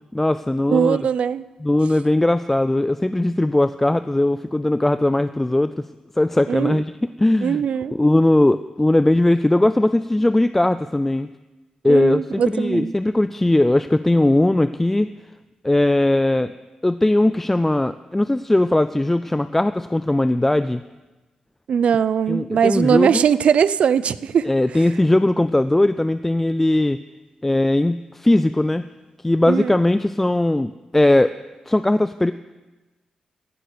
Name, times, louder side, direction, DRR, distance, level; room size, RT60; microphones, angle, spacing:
voice 1, 0.1-1.0 1.6-5.9 6.2-7.6 7.9-11.3 11.8-15.1 15.6-16.5 16.8-20.8 22.3-23.2 24.4-27.0 27.4-28.9 29.2-31.3 31.7-32.3, left 1 dB, 10° left, 13 dB, 0.4 m, -19 dB
voice 2, 0.7-1.4 6.5-6.8 7.4-8.0 11.8-12.9 21.7-24.5 29.5-29.7, right 7 dB, 70° right, 17 dB, 0.5 m, -20 dB
15.5 x 6.6 x 9.3 m, 1.2 s
cardioid pair, 100°, 2 cm